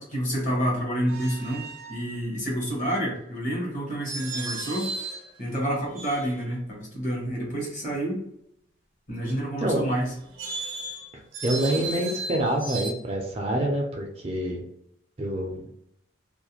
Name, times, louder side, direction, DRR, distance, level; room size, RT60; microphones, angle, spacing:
voice 1, 0.0-4.9 5.4-8.2 9.1-10.1, equal, 40° left, -2 dB, 1.0 m, -29 dB
sound 1, 1.1-2.0 4.0-5.3 5.9-6.6 10.2-12.9, right 2 dB, 80° right, 0.6 m, -35 dB
voice 2, 11.1-14.6 15.2-15.6, right 1 dB, 30° right, 1 dB, 0.5 m, -27 dB
2.4 x 2.1 x 2.8 m, 0.75 s
head